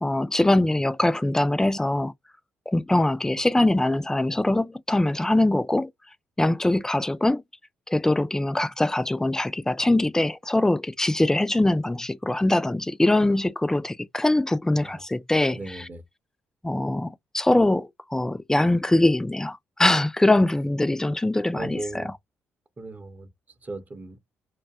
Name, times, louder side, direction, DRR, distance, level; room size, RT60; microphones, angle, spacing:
voice 1, 0.0-2.1 2.7-5.9 6.4-7.4 7.9-15.9 16.6-22.1, left 1 dB, 10° left, 0.3 m, -23 dB
voice 2, 15.5-16.0 21.5-22.1 22.8-23.3 23.6-24.2, right 2 dB, 25° right, 0.7 m, -36 dB
2.5 x 2.1 x 2.4 m
figure-of-eight pair, 40°, 6 cm